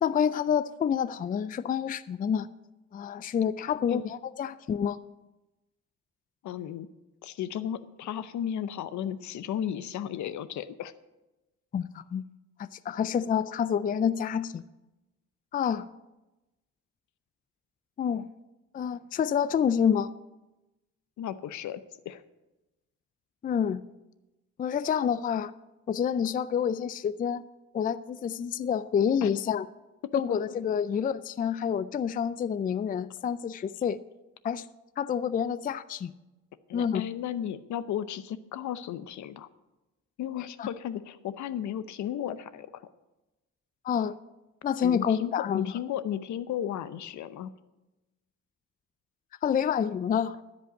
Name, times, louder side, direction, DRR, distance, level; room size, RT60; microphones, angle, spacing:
voice 1, 0.0-2.5 2.9-5.0 11.7-12.2 12.9-14.6 15.5-15.9 18.0-18.2 18.7-20.1 23.4-23.8 24.6-25.5 25.9-27.5 27.7-29.7 30.1-34.0 34.4-34.7 35.0-36.1 36.7-37.0 40.6-40.7 43.8-44.1 44.6-45.7 49.4-50.3, left 8 dB, 30° left, 15 dB, 0.4 m, -28 dB
voice 2, 6.4-6.9 7.2-10.9 21.2-22.2 29.2-29.3 30.1-30.4 36.7-39.5 40.2-42.8 44.8-47.5, left 10 dB, 70° left, 14 dB, 0.7 m, -34 dB
13.0 x 5.3 x 8.9 m, 1.0 s
cardioid pair, 90°, 30 cm